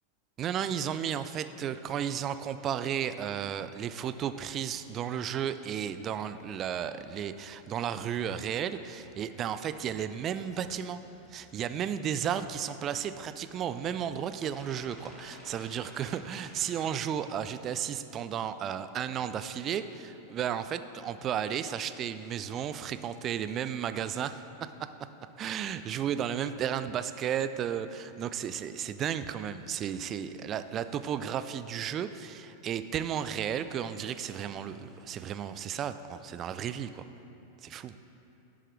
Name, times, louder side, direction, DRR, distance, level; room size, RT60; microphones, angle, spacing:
voice 1, 0.4-11.0 11.3-24.4 25.4-37.1 37.6-37.9, right 9 dB, 30° right, 12 dB, 0.3 m, -33 dB
sound 1, 6.3-17.8, left 1 dB, 15° left, 1.4 m, -56 dB
11.0 x 7.3 x 3.3 m, 2.8 s
figure-of-eight pair, 90°, 0 cm